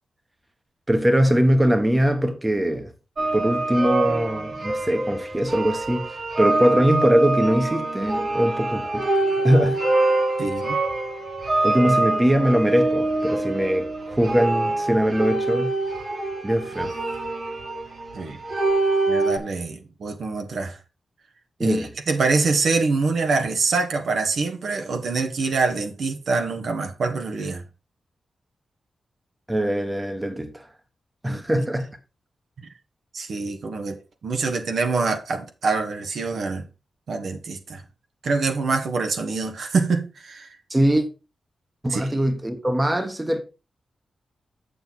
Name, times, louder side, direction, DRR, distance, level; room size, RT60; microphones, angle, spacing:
voice 1, 0.9-2.9 3.3-9.1 9.4-9.8 11.6-15.7 16.4-16.9 21.6-21.9 29.5-30.7 31.2-31.9 40.7-41.0 41.8-43.4, equal, 15° right, 1.2 m, -21 dB
sound 1, 3.2-19.4, right 2 dB, 45° right, 1.9 m, -25 dB
voice 2, 10.4-10.8 18.1-18.4 19.1-20.8 21.6-27.6 31.3-31.6 33.1-34.0 34.2-36.6 37.1-37.8 38.2-40.5 41.9-42.1, right 4 dB, 70° right, 1.4 m, -25 dB
7.5 x 7.0 x 4.1 m
wide cardioid pair, 105°, 0 cm